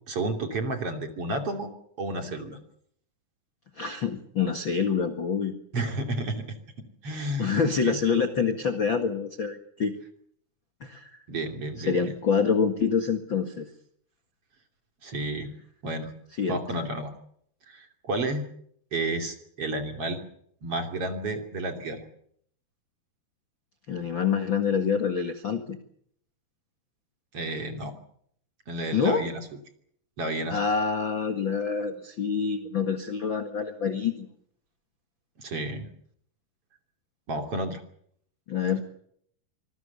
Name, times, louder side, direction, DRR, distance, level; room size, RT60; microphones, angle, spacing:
voice 1, 0.1-1.7 2.0-2.6 5.7-6.6 7.0-7.5 7.8-8.0 11.3-12.0 15.0-15.5 15.8-16.1 16.5-17.1 17.7-18.4 18.9-20.2 20.6-22.0 27.3-27.9 28.7-29.4 30.2-30.6 35.4-35.9 37.3-37.8, right 2 dB, 40° right, 5 dB, 3.3 m, -31 dB
voice 2, 3.8-5.5 7.4-9.9 10.8-11.2 11.8-13.7 16.4-16.6 23.9-25.8 28.9-29.3 30.5-34.3 38.5-38.8, left 6 dB, 45° left, 6 dB, 1.7 m, -26 dB
25.5 x 21.0 x 7.0 m, 0.66 s
omnidirectional pair, 4.6 m